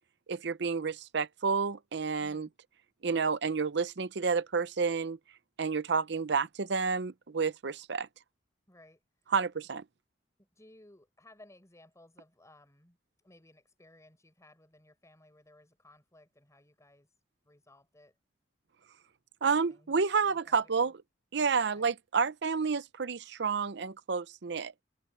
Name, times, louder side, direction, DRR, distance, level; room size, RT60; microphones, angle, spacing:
voice 1, 0.3-2.5 3.0-5.2 5.6-8.1 9.3-9.8 19.4-20.9 21.3-24.7, right 5 dB, 65° right, 0.7 m, -30 dB
voice 2, 2.2-2.5 8.7-9.3 10.4-17.2 17.4-18.2 19.4-19.9 20.2-20.9 21.6-21.9, left 1 dB, 15° left, 5.1 m, -60 dB
head